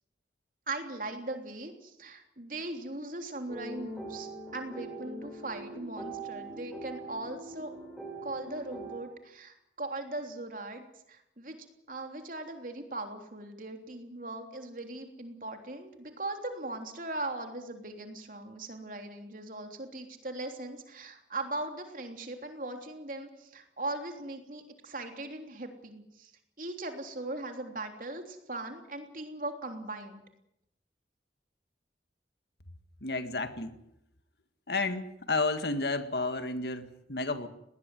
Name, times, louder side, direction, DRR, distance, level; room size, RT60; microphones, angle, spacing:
voice 1, 0.7-7.7 8.2-26.3 26.6-30.2, right 2 dB, 50° right, 5 dB, 3.4 m, -39 dB
sound 1, 3.5-9.0, right 2 dB, ahead, 6.0 m, -42 dB
voice 2, 33.0-33.7 34.7-37.5, left 3 dB, 65° left, 9 dB, 1.9 m, -31 dB
20.0 x 19.0 x 9.2 m, 0.81 s
head